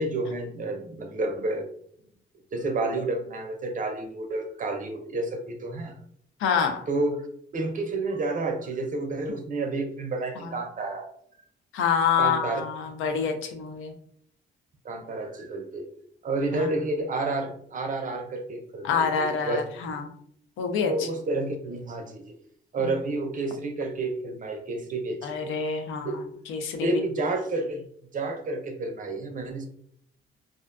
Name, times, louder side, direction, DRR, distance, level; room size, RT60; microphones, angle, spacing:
voice 1, 0.0-1.6 2.5-6.0 6.9-7.3 7.5-11.1 12.2-12.6 14.8-15.9 16.2-19.6 20.8-22.3 22.7-25.4 26.0-26.2 26.8-27.8 28.1-29.7, right 2 dB, 40° right, 5 dB, 0.5 m, -30 dB
voice 2, 6.4-6.8 10.4-10.5 11.7-13.9 16.5-16.7 18.8-20.1 20.6-21.1 25.2-26.2 26.5-27.0, left 6 dB, 85° left, 5 dB, 0.5 m, -27 dB
2.5 x 2.1 x 2.4 m, 0.66 s
cardioid pair, 90°, 20 cm